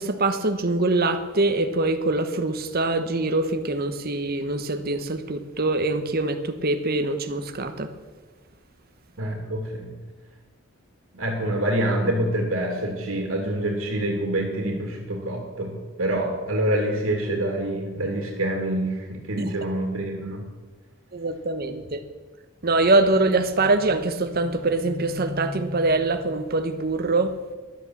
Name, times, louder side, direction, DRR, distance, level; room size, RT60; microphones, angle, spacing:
voice 1, 0.0-7.9 19.4-19.5 21.1-22.0 22.6-27.4, right 2 dB, 45° right, 9 dB, 1.0 m, -24 dB
voice 2, 9.2-9.9 11.1-20.4, right 1 dB, 70° right, 1 dB, 2.2 m, -26 dB
12.5 x 8.5 x 7.3 m, 1.3 s
head